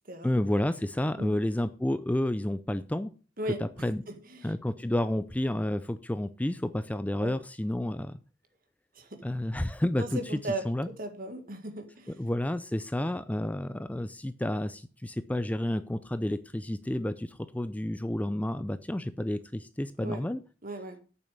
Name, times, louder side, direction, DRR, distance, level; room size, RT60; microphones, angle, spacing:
voice 1, 0.2-3.1 3.6-4.0 4.4-8.2 9.2-10.2 10.6-10.9 12.2-20.4, left 1 dB, 10° left, 13 dB, 0.4 m, -30 dB
voice 2, 3.4-4.5 7.2-7.4 9.0-9.2 10.0-12.2 20.0-20.2 20.6-21.0, right 1 dB, 50° right, 7 dB, 1.9 m, -37 dB
8.7 x 7.1 x 6.6 m, 0.37 s
head